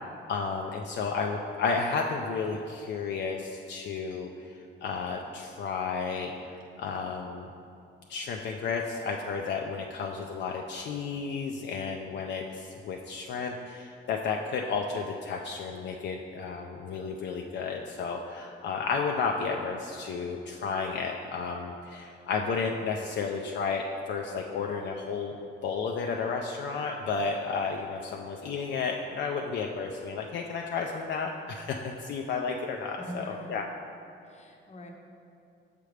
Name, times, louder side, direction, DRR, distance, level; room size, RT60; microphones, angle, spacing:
voice 1, 0.3-6.5 6.8-7.5 8.1-25.4 25.6-33.7, left 5 dB, 65° left, 1 dB, 0.4 m, -32 dB
voice 2, 33.0-33.5 34.2-34.9, equal, 35° left, 2 dB, 0.8 m, -42 dB
6.7 x 5.0 x 3.2 m, 2.6 s
cardioid pair, 90°, 20 cm